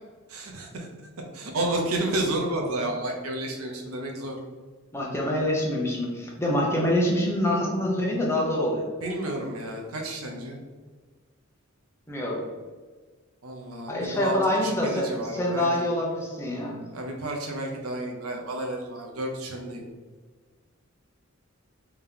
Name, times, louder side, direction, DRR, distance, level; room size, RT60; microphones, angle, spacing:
voice 1, 0.3-0.9 1.3-4.4 9.0-10.6 13.4-15.8 16.9-19.8, right 1 dB, 85° right, 1 dB, 0.7 m, -31 dB
voice 2, 4.9-8.8 12.1-12.4 13.9-16.8, left 1 dB, 10° left, -3 dB, 0.7 m, -26 dB
3.6 x 2.9 x 3.7 m, 1.4 s
head